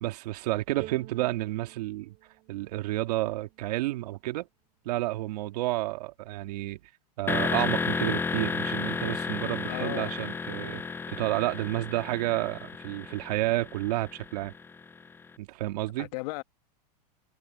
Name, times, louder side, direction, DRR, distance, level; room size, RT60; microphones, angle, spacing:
voice 1, 0.0-2.1 2.5-4.5 4.9-6.8 7.2-10.8 11.1-14.5 15.4-16.1, right 17 dB, 70° right, 2.1 m, -30 dB
Bowed string instrument, 0.8-4.0, right 17 dB, 45° right, 4.4 m, -49 dB
sound 1, 7.3-15.1, left 4 dB, 10° left, 0.4 m, -32 dB
voice 2, 9.6-10.2 16.0-16.4, left 23 dB, 60° left, 1.9 m, -36 dB
hypercardioid pair, 115°, 21 cm